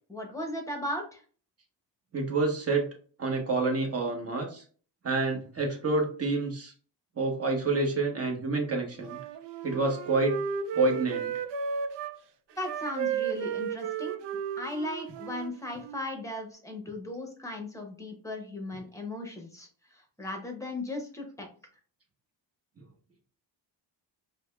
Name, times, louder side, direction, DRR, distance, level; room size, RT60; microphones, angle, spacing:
voice 1, 0.1-1.2 12.6-14.2 14.6-21.5, left 1 dB, 5° left, 3 dB, 0.9 m, -37 dB
voice 2, 2.1-2.9 3.2-4.6 5.0-6.7 7.2-9.2 9.6-10.4 10.7-11.3, right 3 dB, 35° right, 1 dB, 1.1 m, -28 dB
Wind instrument woodwind instrument, 9.0-12.1 12.6-16.0, right 7 dB, 70° right, 0.6 m, -34 dB
5.0 x 2.2 x 2.4 m, 0.42 s
cardioid pair, 130°, 43 cm